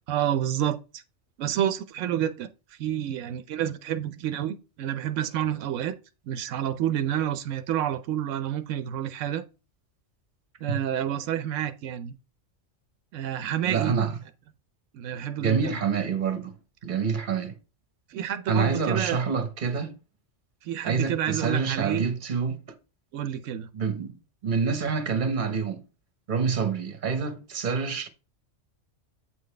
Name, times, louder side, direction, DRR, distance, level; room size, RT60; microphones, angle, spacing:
voice 1, 0.1-1.0 1.4-2.5 2.8-5.9 6.3-9.4 10.6-12.2 13.1-13.9 14.9-15.8 18.1-19.2 20.6-22.0 23.1-23.7, right 10 dB, 90° right, 0.9 m, -29 dB
voice 2, 13.6-14.2 15.4-16.5 16.8-17.5 18.5-20.0 20.8-22.6 23.7-25.8 26.3-28.1, right 5 dB, 45° right, 1.1 m, -27 dB
8.1 x 3.9 x 3.2 m
omnidirectional pair, 1.2 m